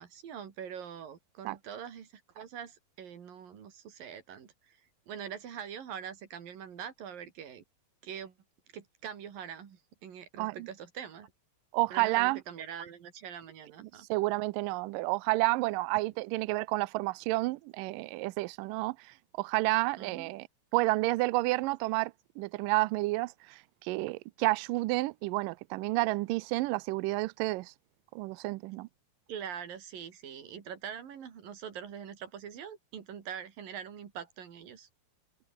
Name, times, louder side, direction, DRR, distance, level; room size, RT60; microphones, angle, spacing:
voice 1, 0.0-4.8 5.1-7.6 8.0-8.3 8.7-11.3 11.9-14.1 20.0-20.3 29.3-34.9, right 8 dB, 65° right, 4.4 m, -43 dB
voice 2, 11.7-12.4 13.8-20.5 20.7-27.7 28.2-28.9, right 21 dB, 80° right, 2.0 m, -30 dB
omnidirectional pair, 4.4 m